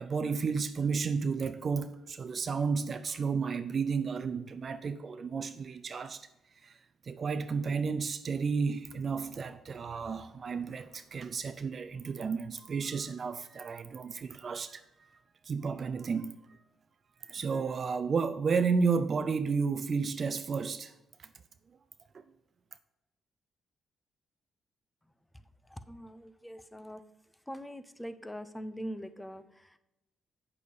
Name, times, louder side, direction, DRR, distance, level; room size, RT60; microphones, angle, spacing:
voice 1, 0.0-6.3 6.6-6.7 7.0-14.8 15.4-16.4 17.2-20.9 21.2-21.3 22.1-22.2, right 5 dB, 45° right, 0.5 m, -32 dB
voice 2, 25.7-27.0 27.5-29.8, equal, 10° left, 0.7 m, -42 dB
8.4 x 6.6 x 5.4 m
cardioid pair, 90°, 0 cm